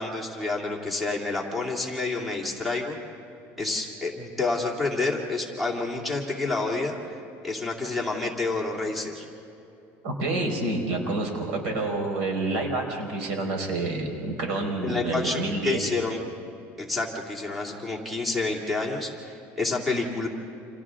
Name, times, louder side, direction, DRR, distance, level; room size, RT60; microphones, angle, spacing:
voice 1, 0.0-3.0 3.6-7.0 7.4-9.3 14.8-16.2 16.8-20.3, left 3 dB, ahead, -1 dB, 2.4 m, -29 dB
voice 2, 10.0-15.8, right 2 dB, 90° right, 2 dB, 5.0 m, -28 dB
30.0 x 27.5 x 3.7 m, 2.8 s
cardioid pair, 160°, 6 cm